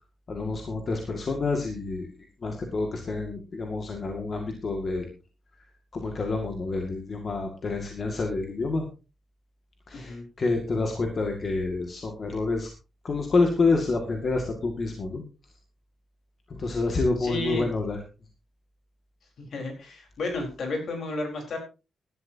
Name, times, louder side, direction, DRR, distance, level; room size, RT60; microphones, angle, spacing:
voice 1, 0.3-2.1 2.4-5.1 5.9-8.8 9.9-12.7 13.0-15.2 16.5-18.0, left 3 dB, 35° left, 3 dB, 2.1 m, -28 dB
voice 2, 9.9-10.2 17.2-17.7 19.4-21.6, left 2 dB, 55° left, 3 dB, 4.3 m, -32 dB
18.0 x 12.5 x 2.8 m, 0.31 s
wide cardioid pair, 180°, 0 cm